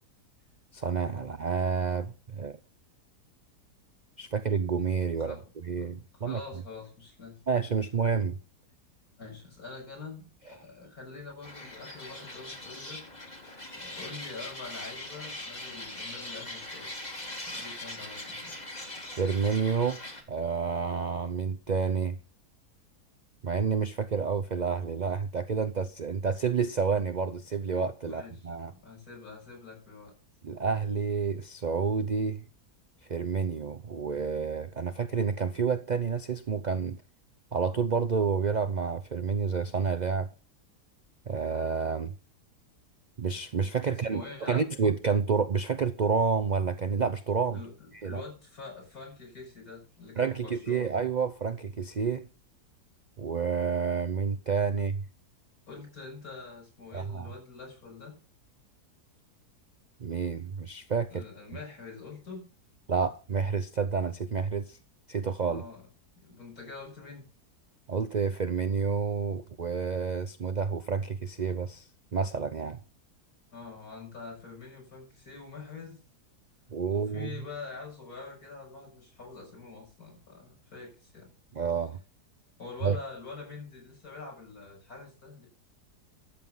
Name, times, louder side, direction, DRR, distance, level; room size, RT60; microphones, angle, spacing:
voice 1, 0.7-2.6 4.2-5.4 5.6-6.4 7.5-8.4 19.1-20.0 20.3-22.2 23.4-28.7 30.4-32.5 33.0-37.0 37.5-40.3 41.3-42.1 43.2-47.6 48.0-48.2 50.2-52.3 53.2-55.1 56.9-57.3 60.0-61.2 62.9-64.8 65.1-65.6 67.9-72.8 76.7-77.3 81.5-82.0 82.8-83.0, right 5 dB, 65° right, 0.4 m, -29 dB
voice 2, 6.2-7.4 9.2-13.1 13.7-16.9 17.5-18.6 28.1-30.1 43.9-44.7 47.5-50.9 54.8-54.9 55.7-58.2 61.1-62.5 65.5-65.8 66.2-67.3 73.5-76.0 76.9-81.3 82.6-85.5, left 4 dB, 60° left, 7.2 m, -45 dB
sound 1, 11.4-20.2, left 1 dB, 25° left, 2.5 m, -41 dB
12.5 x 7.9 x 5.5 m
omnidirectional pair, 1.7 m